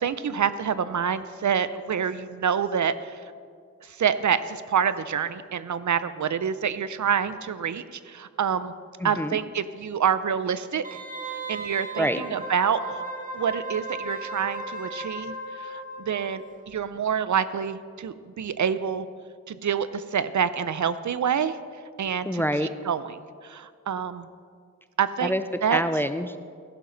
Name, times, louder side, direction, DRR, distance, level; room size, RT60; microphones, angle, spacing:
voice 1, 0.0-3.2 3.8-8.7 9.0-11.0 11.5-13.0 13.3-19.1 19.5-21.6 22.0-22.4 22.9-24.3 25.0-25.3 25.6-25.8, right 7 dB, 70° right, 14 dB, 0.5 m, -27 dB
voice 2, 9.0-9.4 12.0-12.2 22.3-22.7 25.2-25.4 25.7-26.4, equal, 5° left, 10 dB, 0.4 m, -26 dB
Wind instrument woodwind instrument, 10.8-16.4 16.7-16.8, right 2 dB, 25° right, 1.4 m, -36 dB
14.5 x 11.5 x 3.9 m, 2.1 s
wide cardioid pair, 100°, 31 cm